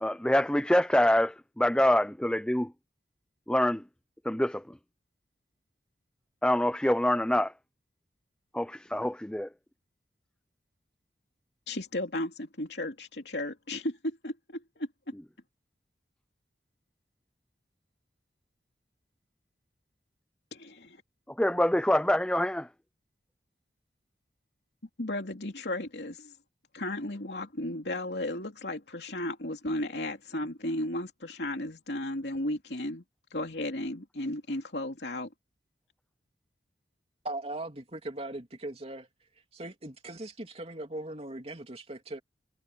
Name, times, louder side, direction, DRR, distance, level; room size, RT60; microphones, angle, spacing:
voice 1, 0.0-2.7 3.5-3.8 4.3-4.6 6.4-7.5 8.5-9.5 21.4-22.7, left 1 dB, 5° left, 0.5 m, -25 dB
voice 2, 11.7-14.9 20.5-21.0 25.0-26.3 26.7-33.0 33.3-35.3, left 1 dB, 70° left, 3.0 m, -34 dB
voice 3, 37.2-39.1 39.5-42.2, right 2 dB, 35° right, 3.2 m, -39 dB
head